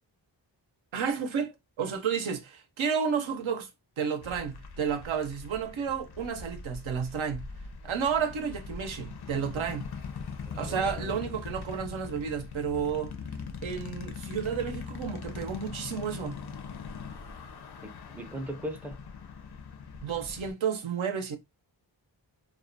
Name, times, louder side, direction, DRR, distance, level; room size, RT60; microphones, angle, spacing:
voice 1, 0.9-1.5 1.8-3.7 4.0-7.4 7.8-9.9 10.5-13.1 13.6-16.3 20.0-21.4, right 7 dB, 80° right, 0.6 m, -31 dB
sound 1, 4.2-20.5, left 5 dB, 55° left, 0.5 m, -41 dB
voice 2, 10.5-11.4 17.8-19.0, right 1 dB, 5° right, 0.4 m, -40 dB
2.3 x 2.1 x 2.5 m
wide cardioid pair, 70°, 46 cm